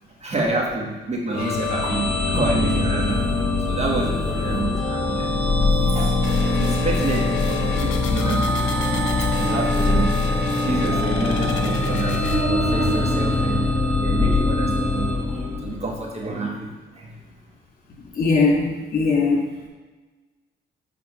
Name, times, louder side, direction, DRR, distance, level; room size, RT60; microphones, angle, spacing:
voice 1, 0.2-3.3 3.7-5.4 5.8-6.2 6.6-8.7 9.4-13.7 14.0-17.1, right 2 dB, 35° right, -1 dB, 1.4 m, -28 dB
sound 1, 1.3-16.0, left 2 dB, 5° left, 1.6 m, -23 dB
sound 2, 6.2-12.4, left 6 dB, 70° left, 0.9 m, -29 dB
sound 3, 12.5-16.2, left 2 dB, 75° right, 2.0 m, -32 dB
voice 2, 18.1-19.4, left 4 dB, 50° left, -3 dB, 2.2 m, -20 dB
7.6 x 3.6 x 5.1 m, 1.3 s
cardioid pair, 90°, 20 cm